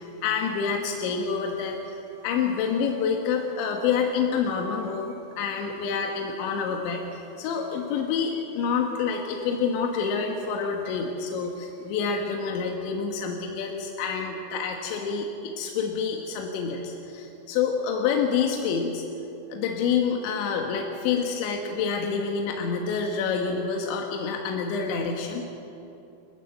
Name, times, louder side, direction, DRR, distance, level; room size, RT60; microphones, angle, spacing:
voice 1, 0.2-1.8 2.2-19.0 19.5-25.4, left 6 dB, 75° left, 2 dB, 3.6 m, -27 dB
29.0 x 13.0 x 7.8 m, 2.9 s
omnidirectional pair, 5.4 m